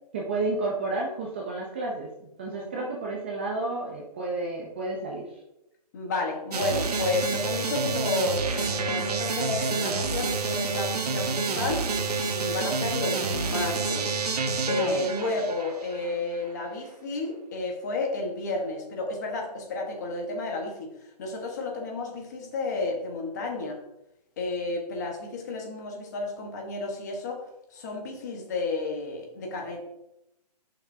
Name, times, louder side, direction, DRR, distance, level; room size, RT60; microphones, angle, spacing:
voice 1, 0.1-5.3, right 2 dB, 15° right, -2 dB, 0.6 m, -31 dB
voice 2, 2.6-2.9 5.9-20.9 21.2-23.8 24.4-27.4 27.7-29.8, left 3 dB, 25° left, 1 dB, 1.3 m, -31 dB
sound 1, 6.5-16.2, right 4 dB, 70° right, 1.2 m, -28 dB
10.5 x 6.0 x 2.7 m, 0.88 s
hypercardioid pair, 175°, 21 cm